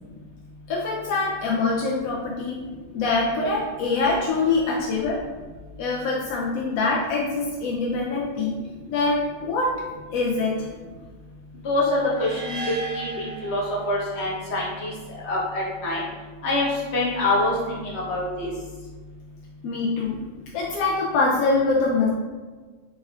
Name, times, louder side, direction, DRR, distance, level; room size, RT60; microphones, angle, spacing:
voice 1, 0.7-2.6 2.9-5.2 5.8-8.6 8.9-9.8 10.1-10.7 19.6-20.2 20.5-22.1, left 3 dB, 80° left, -3 dB, 1.0 m, -24 dB
voice 2, 11.6-12.6 12.9-16.0 16.4-16.7 16.9-18.5, left 2 dB, 55° left, -5 dB, 1.2 m, -25 dB
sound 1, 12.1-14.3, right 3 dB, 85° right, 1.2 m, -36 dB
4.1 x 3.5 x 2.4 m, 1.4 s
omnidirectional pair, 1.4 m